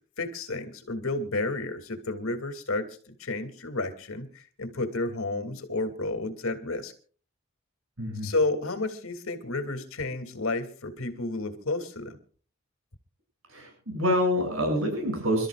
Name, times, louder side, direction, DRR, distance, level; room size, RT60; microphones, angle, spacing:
voice 1, 0.2-6.9 8.2-12.2, left 2 dB, 80° left, 7 dB, 2.8 m, -31 dB
voice 2, 8.0-8.3 13.5-15.5, equal, 80° right, 2 dB, 7.6 m, -27 dB
28.5 x 13.5 x 2.5 m, 0.41 s
head